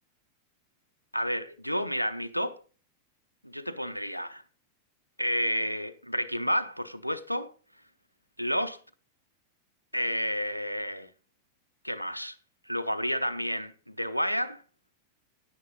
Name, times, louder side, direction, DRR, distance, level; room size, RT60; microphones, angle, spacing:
voice 1, 1.1-2.6 3.4-4.4 5.2-7.5 8.4-8.8 9.9-11.1 11.8-12.4 12.7-14.6, equal, 90° left, 0.5 m, -30 dB
9.8 x 9.4 x 4.0 m
figure-of-eight pair, 90°, 0 cm